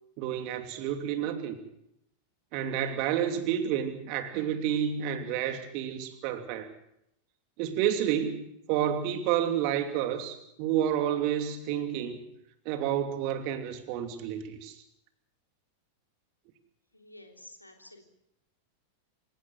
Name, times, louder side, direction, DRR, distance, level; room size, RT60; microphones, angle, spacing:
voice 1, 0.2-1.6 2.5-6.7 7.6-12.2 12.6-14.8, right 10 dB, 45° right, 8 dB, 2.9 m, -30 dB
voice 2, 16.9-18.0, left 1 dB, 85° left, 4 dB, 3.3 m, -51 dB
27.0 x 16.5 x 7.9 m, 0.79 s
figure-of-eight pair, 90°, 0 cm